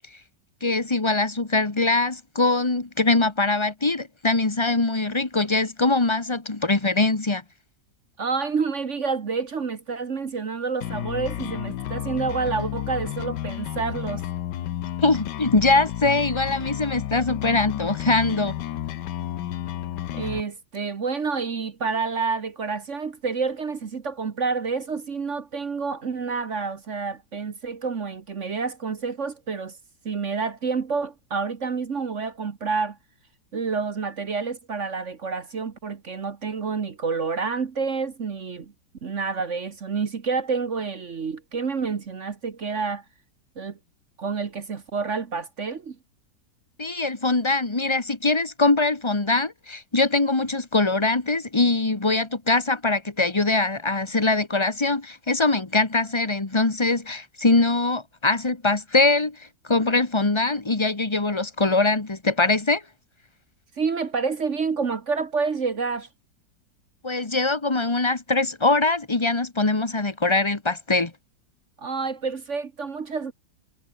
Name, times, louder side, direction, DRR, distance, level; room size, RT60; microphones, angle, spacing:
voice 1, 0.6-7.4 15.0-18.5 46.8-62.8 67.0-71.1, left 3 dB, 15° left, 1.5 m, -22 dB
voice 2, 8.2-14.2 20.1-29.8 30.0-33.0 33.5-38.7 39.0-43.0 43.6-43.8 44.2-46.0 63.8-66.1 71.8-73.3, right 5 dB, 45° right, 1.5 m, -28 dB
sound 1, 10.8-20.4, left 12 dB, 75° left, 1.4 m, -32 dB
omnidirectional pair, 1.9 m